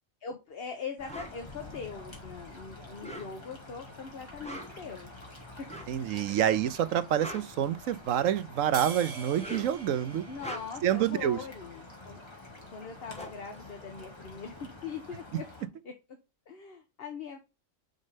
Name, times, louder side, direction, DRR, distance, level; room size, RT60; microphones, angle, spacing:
voice 1, 0.2-5.1 10.3-12.2 12.7-15.4 15.8-15.9 16.5-17.4, left 5 dB, 50° left, 1.2 m, -41 dB
sound 1, 1.0-15.7, left 2 dB, 20° left, 2.1 m, -48 dB
sound 2, 1.1-1.4 2.9-3.6 4.3-4.9 5.6-6.0 6.9-8.2 9.2-9.8 10.3-10.9 12.5-12.6 12.8-14.5, equal, 5° left, 1.7 m, -43 dB
voice 2, 5.9-10.2 10.8-11.4, right 10 dB, 80° right, 1.1 m, -27 dB
sound 3, 8.7-11.3, right 5 dB, 65° right, 1.3 m, -44 dB
5.4 x 5.3 x 5.0 m
omnidirectional pair, 1.4 m